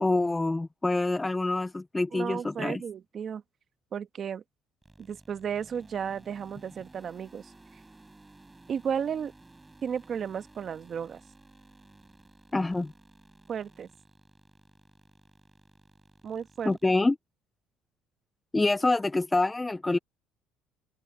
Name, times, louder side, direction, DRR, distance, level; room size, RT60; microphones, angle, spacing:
voice 1, 0.0-2.8 12.5-12.9 16.7-17.1 18.5-20.0, left 2 dB, 15° left, 0.5 m, -26 dB
voice 2, 2.1-3.4 3.9-4.4 5.0-7.5 8.7-9.3 9.8-11.2 13.5-13.9 16.2-16.8, right 7 dB, 40° right, 1.4 m, -34 dB
sound 1, 4.8-17.0, right 2 dB, 15° right, 6.1 m, -56 dB
open air
cardioid pair, 110°, 0 cm